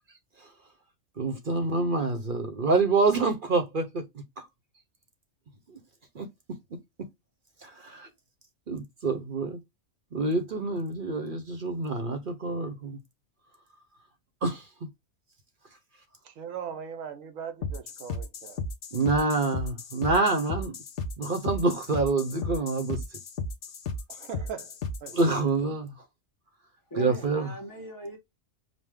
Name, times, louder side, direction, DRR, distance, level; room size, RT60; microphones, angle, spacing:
voice 1, 1.2-4.5 5.7-5.8 6.1-6.3 7.6-8.1 8.7-9.6 10.1-13.0 14.4-14.7 18.9-20.8 21.2-23.0 25.1-25.9 27.0-27.5, right 3 dB, 45° right, 0.9 m, -27 dB
voice 2, 16.2-18.6 24.1-24.7 25.0-25.2, right 7 dB, 90° right, 1.1 m, -39 dB
sound 1, 17.6-25.3, left 3 dB, 55° left, 0.8 m, -35 dB
voice 3, 26.9-28.2, right 1 dB, 15° left, 1.2 m, -38 dB
5.1 x 2.2 x 3.5 m
omnidirectional pair, 1.3 m